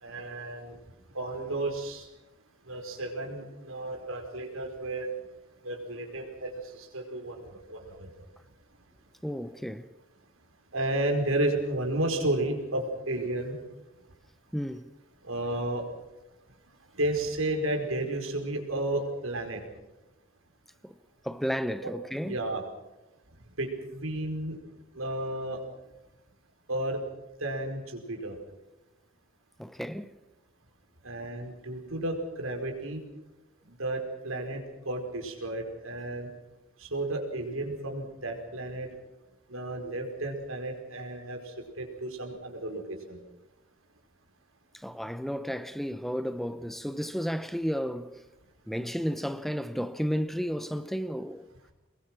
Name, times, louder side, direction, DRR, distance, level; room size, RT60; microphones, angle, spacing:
voice 1, 0.0-0.8 1.1-2.0 2.7-5.1 5.6-6.5 6.8-8.1 10.7-13.6 15.3-15.8 17.0-19.6 21.8-21.9 22.2-22.6 23.6-24.6 24.9-25.6 26.7-27.0 27.4-28.3 31.0-33.0 33.8-36.3 36.8-38.9 39.5-42.8 43.1-43.2, right 1 dB, 85° right, 4.8 m, -32 dB
voice 2, 9.2-9.9 14.5-14.9 20.8-21.0 21.2-22.4 29.6-30.2 44.7-48.2 48.7-51.5, equal, ahead, 0.7 m, -33 dB
23.5 x 21.5 x 6.1 m
head